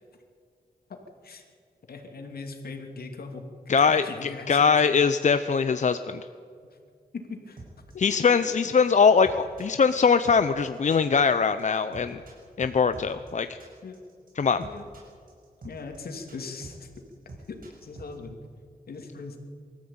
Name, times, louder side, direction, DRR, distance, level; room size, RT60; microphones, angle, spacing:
voice 1, 1.9-5.0 7.1-7.6 7.9-8.2 13.1-13.2 13.8-14.0 14.6-14.9 15.6-16.9 17.5-18.4 18.9-19.4, left 4 dB, 75° left, 4 dB, 2.9 m, -40 dB
voice 2, 3.7-6.2 8.0-12.2 12.6-13.6 14.4-14.7, left 5 dB, 50° left, 10 dB, 0.7 m, -22 dB
sound 1, 7.6-18.1, right 2 dB, 65° right, 6.2 m, -46 dB
23.5 x 14.0 x 8.8 m, 2.2 s
wide cardioid pair, 100°, 16 cm